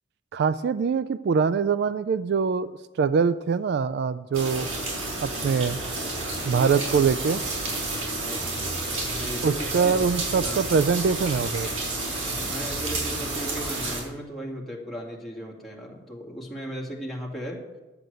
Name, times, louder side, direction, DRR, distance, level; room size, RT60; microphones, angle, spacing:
voice 1, 0.3-2.7 3.0-4.7 5.2-5.8 6.4-7.4 9.4-11.7, right 5 dB, 55° right, 14 dB, 0.3 m, -23 dB
sound 1, 4.3-14.0, right 2 dB, 90° right, 4.8 m, -30 dB
voice 2, 7.9-9.9 10.3-10.6 12.2-17.6, equal, ahead, -4 dB, 2.2 m, -37 dB
10.5 x 7.6 x 6.8 m, 1.2 s
head